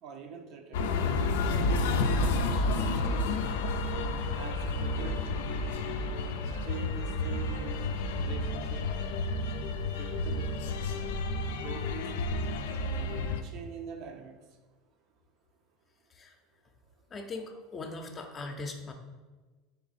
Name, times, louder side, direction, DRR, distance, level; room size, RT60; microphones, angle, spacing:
voice 1, 0.0-0.9 2.1-3.3 4.3-5.2 6.6-8.8 10.0-10.6 11.6-12.1 13.4-14.3, right 6 dB, 55° right, 4 dB, 0.5 m, -44 dB
sound 1, 0.7-13.4, left 2 dB, 85° left, 0.3 m, -30 dB
voice 2, 17.1-18.9, left 3 dB, 30° left, 4 dB, 0.5 m, -40 dB
3.9 x 2.7 x 4.0 m, 1.3 s
supercardioid pair, 115°, 0 cm